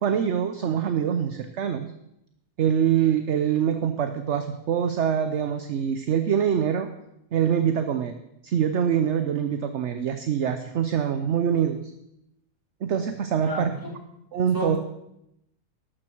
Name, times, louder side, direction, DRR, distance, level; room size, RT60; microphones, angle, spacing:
voice 1, 0.0-1.9 2.6-6.9 7.3-8.1 8.4-11.8 12.8-13.7 14.3-14.8, right 8 dB, 55° right, 9 dB, 0.9 m, -24 dB
voice 2, 13.4-13.9 14.5-14.8, left 1 dB, 10° right, -3 dB, 3.5 m, -31 dB
13.0 x 12.0 x 4.5 m, 0.82 s
omnidirectional pair, 1.7 m